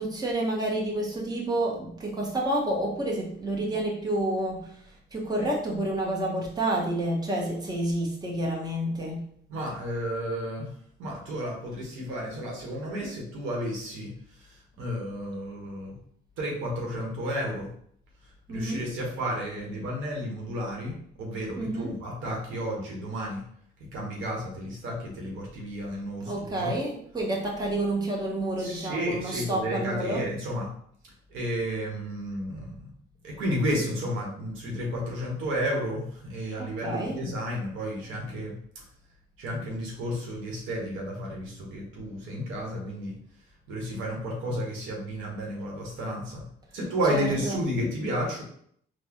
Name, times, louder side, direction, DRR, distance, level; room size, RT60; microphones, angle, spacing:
voice 1, 0.0-9.2 18.5-18.9 21.6-22.0 26.3-30.2 36.6-37.2 47.1-47.6, right 1 dB, 20° right, -2 dB, 1.0 m, -29 dB
voice 2, 9.5-10.7 11.0-16.0 16.4-17.7 18.5-23.4 23.9-26.8 28.6-30.7 31.3-32.9 33.2-38.8 39.4-43.1 43.7-46.4 46.7-48.4, equal, 85° right, -2 dB, 1.2 m, -32 dB
4.1 x 2.3 x 2.9 m, 0.65 s
cardioid pair, 90°, 20 cm